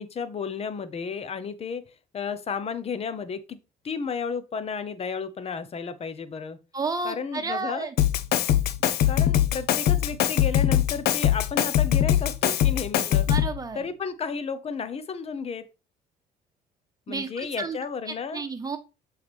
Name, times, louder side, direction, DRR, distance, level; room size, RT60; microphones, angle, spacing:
voice 1, 0.0-1.8 2.1-3.6 3.8-6.6 7.0-7.9 9.1-13.3 13.7-15.6 17.1-18.4, left 5 dB, 35° left, 13 dB, 0.8 m, -32 dB
voice 2, 6.7-7.9 13.3-13.9 17.1-17.8 18.1-18.8, right 4 dB, 20° right, 7 dB, 1.1 m, -31 dB
Drum kit, 8.0-13.6, left 11 dB, 70° left, 0.7 m, -22 dB
7.1 x 4.7 x 3.4 m, 0.29 s
cardioid pair, 110°, 17 cm